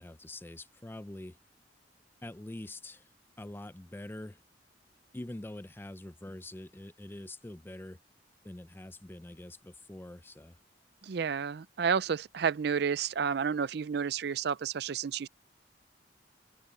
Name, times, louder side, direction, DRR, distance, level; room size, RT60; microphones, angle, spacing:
voice 1, 0.0-1.4 2.2-3.1 3.4-4.4 5.1-8.0 8.4-10.6, left 1 dB, 10° left, 0.5 m, -44 dB
voice 2, 11.0-15.3, right 6 dB, 65° right, 0.4 m, -31 dB
head